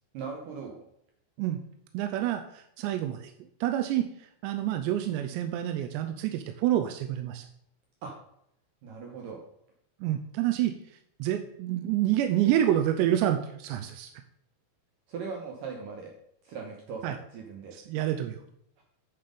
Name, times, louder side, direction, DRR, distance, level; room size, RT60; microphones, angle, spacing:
voice 1, 0.1-0.8 8.0-8.1 8.8-9.4 15.1-16.2 16.4-17.8 18.8-18.9, right 5 dB, 75° right, 1 dB, 2.1 m, -39 dB
voice 2, 1.9-3.3 3.6-4.1 4.4-7.5 10.0-10.8 11.2-14.1 17.0-17.2 17.7-18.4, right 12 dB, 90° right, 6 dB, 2.8 m, -28 dB
9.0 x 5.9 x 5.1 m, 0.74 s
omnidirectional pair, 5.0 m